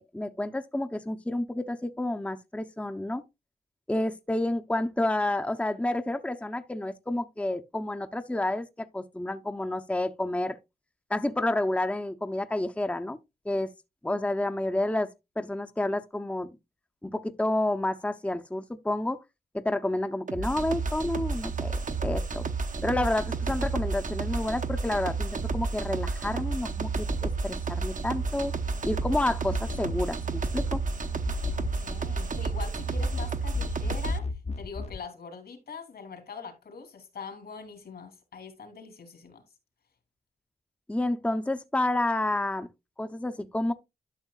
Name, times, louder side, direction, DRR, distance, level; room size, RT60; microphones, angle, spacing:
voice 1, 0.0-3.2 3.9-10.6 11.1-13.2 13.4-13.7 14.0-16.5 17.0-19.2 19.5-22.4 22.8-28.5 28.8-30.8 40.9-42.7 43.0-43.7, left 1 dB, 10° left, 0.7 m, -30 dB
sound 1, 20.3-34.2, right 4 dB, 55° right, 1.0 m, -31 dB
sound 2, 28.2-35.0, left 4 dB, 45° left, 0.8 m, -36 dB
voice 2, 31.6-39.4, left 5 dB, 75° left, 2.9 m, -43 dB
12.0 x 6.3 x 2.4 m
cardioid pair, 55°, 16 cm